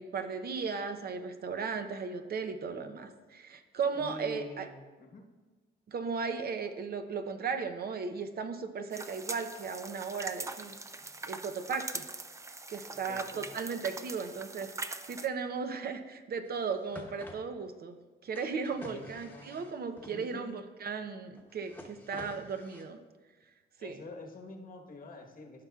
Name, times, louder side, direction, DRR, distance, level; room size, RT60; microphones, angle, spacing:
voice 1, 0.0-4.7 5.9-10.7 11.3-12.0 12.7-18.0 18.2-23.0 23.8-24.0, right 5 dB, 50° right, 8 dB, 0.7 m, -36 dB
voice 2, 3.9-5.2 13.1-13.5 18.9-19.6 20.1-20.6 23.8-25.6, left 2 dB, 45° left, 2 dB, 1.2 m, -47 dB
sound 1, 8.9-15.3, right 3 dB, 15° right, 0.4 m, -42 dB
sound 2, 16.5-16.6 16.8-17.4 18.3-20.1 21.3-22.8, left 1 dB, 10° left, 1.1 m, -49 dB
14.5 x 5.6 x 2.4 m, 1.3 s
cardioid pair, 90°, 20 cm